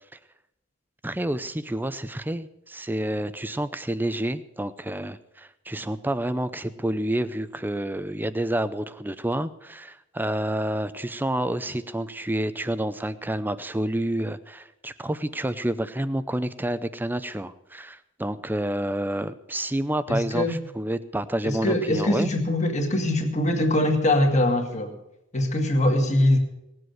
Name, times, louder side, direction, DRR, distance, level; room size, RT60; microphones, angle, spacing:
voice 1, 1.0-22.3, right 1 dB, 10° right, 13 dB, 0.6 m, -29 dB
voice 2, 20.1-20.6 21.4-25.0 25.3-26.4, left 1 dB, 35° left, 3 dB, 2.0 m, -22 dB
18.5 x 7.8 x 7.9 m, 0.87 s
head